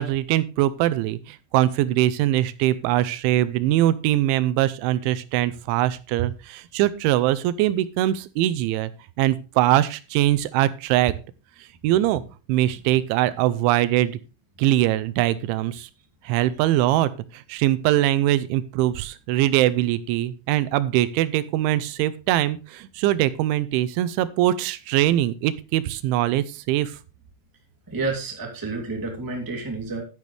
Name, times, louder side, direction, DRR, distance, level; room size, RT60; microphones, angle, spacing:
voice 1, 0.0-8.9 9.2-11.2 11.8-12.2 12.5-14.2 14.6-15.9 16.2-27.0, right 14 dB, 85° right, 15 dB, 3.0 m, -22 dB
voice 2, 27.9-30.0, right 3 dB, 5° right, 1 dB, 1.6 m, -29 dB
11.0 x 10.5 x 3.3 m, 0.31 s
omnidirectional pair, 5.4 m